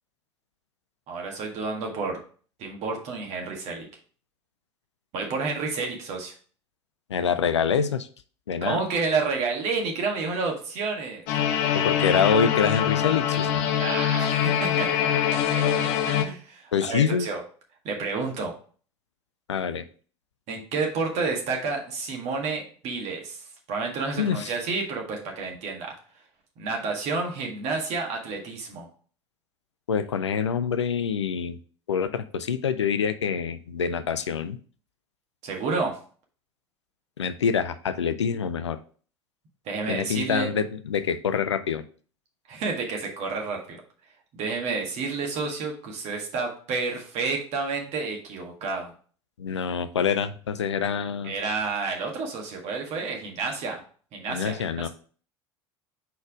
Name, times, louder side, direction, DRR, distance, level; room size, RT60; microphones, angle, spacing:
voice 1, 1.1-2.2 2.6-3.9 5.1-6.3 8.6-11.3 13.8-14.9 15.3-17.4 17.8-18.5 20.5-25.9 26.6-28.9 35.4-36.0 39.6-40.5 42.5-43.8 44.3-48.9 51.2-53.8 54.1-54.9, right 4 dB, 50° right, 1 dB, 1.8 m, -30 dB
voice 2, 7.1-8.1 8.5-8.8 11.7-13.6 16.7-17.3 19.5-19.8 24.2-24.5 29.9-31.6 31.9-34.6 37.2-38.8 39.9-41.8 49.4-51.3 54.3-54.9, left 7 dB, 80° left, 11 dB, 0.5 m, -26 dB
sound 1, 11.3-16.2, left 9 dB, 60° left, 0.8 m, -24 dB
4.7 x 4.2 x 4.9 m, 0.43 s
figure-of-eight pair, 70°, 14 cm